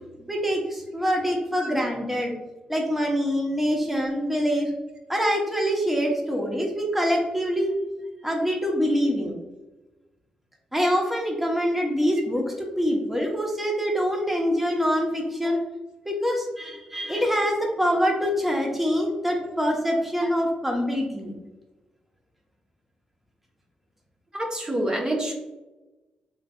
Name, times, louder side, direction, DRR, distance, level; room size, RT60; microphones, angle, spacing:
voice 1, 0.3-2.3 2.7-4.7 5.1-7.7 8.2-9.4 10.7-12.4 12.8-15.6 16.1-21.3, equal, 5° right, 0 dB, 1.0 m, -25 dB
voice 2, 24.3-25.3, right 1 dB, 30° right, -1 dB, 1.0 m, -28 dB
3.9 x 3.2 x 2.3 m, 1.1 s
supercardioid pair, 55°, 3 cm